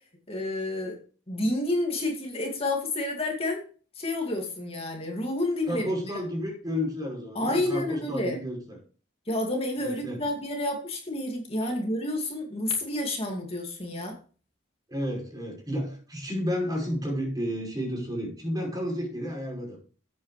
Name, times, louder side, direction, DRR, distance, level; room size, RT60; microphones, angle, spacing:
voice 1, 0.3-1.0 1.3-3.6 4.0-5.9 7.3-8.4 9.3-14.2, left 1 dB, 30° left, 2 dB, 2.4 m, -29 dB
voice 2, 5.7-8.8 9.8-10.2 14.9-19.8, equal, 20° right, 0 dB, 5.4 m, -31 dB
12.5 x 8.6 x 3.3 m, 0.38 s
head